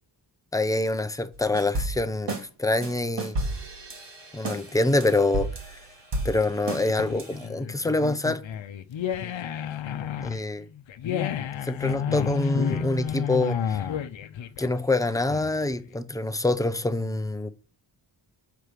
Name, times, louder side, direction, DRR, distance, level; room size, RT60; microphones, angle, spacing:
voice 1, 0.5-3.4 4.3-5.8 6.2-8.4 10.2-10.7 11.6-13.9 14.6-17.5, left 2 dB, 5° left, 0.7 m, -26 dB
sound 1, 1.3-2.4 2.8-7.5, right 2 dB, 60° right, 2.3 m, -33 dB
sound 2, 6.7-15.8, left 9 dB, 70° left, 0.8 m, -31 dB
6.8 x 4.7 x 5.1 m
cardioid pair, 80°, 48 cm